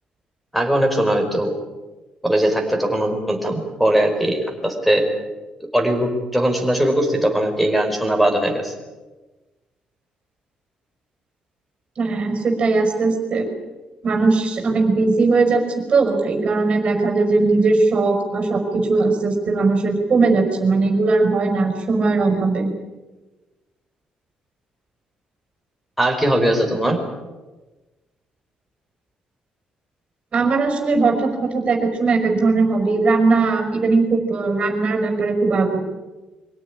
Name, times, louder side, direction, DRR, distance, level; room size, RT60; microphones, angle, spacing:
voice 1, 0.5-1.5 2.2-5.1 5.6-8.7 26.0-27.0, right 1 dB, ahead, 1 dB, 5.0 m, -20 dB
voice 2, 12.0-13.5 14.0-22.7 30.3-35.8, right 3 dB, 40° right, 3 dB, 5.5 m, -19 dB
24.5 x 17.5 x 9.9 m, 1.2 s
cardioid pair, 115°, 3 cm